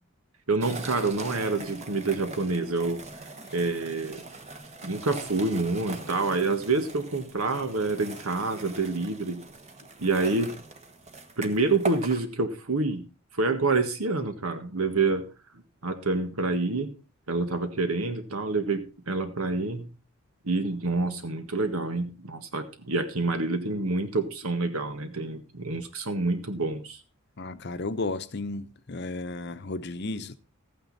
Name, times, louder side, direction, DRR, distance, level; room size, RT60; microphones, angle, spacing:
voice 1, 0.5-3.0 3.5-4.3 4.8-9.5 10.0-10.5 11.4-13.1 13.4-15.3 15.8-16.9 17.3-19.9 20.4-27.0, right 3 dB, 80° right, 1.6 m, -27 dB
sound 1, 0.6-12.2, right 3 dB, 30° right, 1.4 m, -41 dB
voice 2, 27.4-30.4, left 2 dB, 50° left, 0.8 m, -33 dB
14.0 x 9.2 x 4.1 m
head